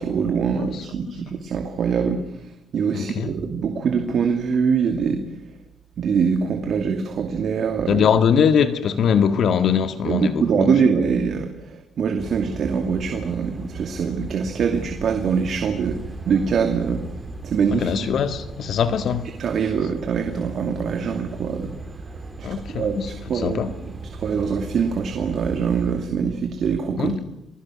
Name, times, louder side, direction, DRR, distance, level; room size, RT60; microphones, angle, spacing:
voice 1, 0.0-2.2 2.7-5.2 6.0-8.0 10.0-16.0 16.3-17.0 17.4-17.9 19.4-21.7 22.4-23.0 23.3-23.6 24.2-27.2, right 6 dB, 60° right, 2.6 m, -23 dB
voice 2, 2.9-3.3 7.9-10.7 17.7-19.3 22.4-23.7 27.0-27.2, left 7 dB, 60° left, 1.9 m, -22 dB
sound 1, 12.2-26.0, right 3 dB, 20° right, 3.6 m, -37 dB
29.5 x 21.0 x 6.4 m
cardioid pair, 115°, 0 cm